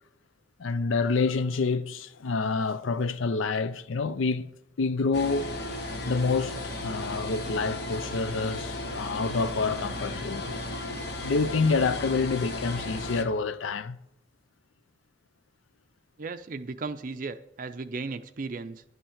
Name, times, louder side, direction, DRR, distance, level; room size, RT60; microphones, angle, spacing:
voice 1, 0.6-4.5 4.8-5.6 6.0-10.5 11.2-14.0, left 4 dB, 85° left, 0.5 m, -28 dB
sound 1, 5.1-13.2, left 1 dB, 55° left, 1.1 m, -35 dB
voice 2, 16.2-18.8, right 3 dB, 45° right, 0.4 m, -36 dB
11.0 x 5.6 x 7.2 m
head